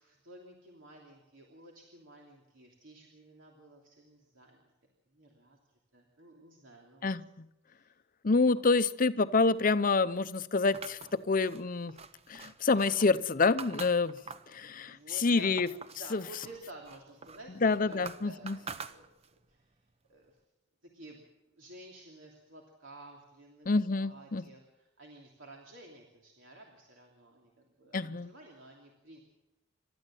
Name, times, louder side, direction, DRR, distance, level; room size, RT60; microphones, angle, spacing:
voice 1, 0.0-4.7 5.1-7.1 7.7-7.9 8.5-8.8 14.6-15.5 15.8-19.0 19.5-20.4 20.8-21.2 21.5-29.2, right 2 dB, 75° right, 0 dB, 3.0 m, -53 dB
voice 2, 8.2-11.9 12.3-14.1 14.5-15.0 15.2-15.7 16.1-16.2 17.6-18.6 23.7-24.4 27.9-28.3, left 3 dB, 45° left, 14 dB, 0.7 m, -27 dB
sound 1, 10.7-14.6 15.0-16.1 16.4-19.4, right 5 dB, 30° right, 0.8 m, -46 dB
28.5 x 13.0 x 7.6 m, 0.98 s
head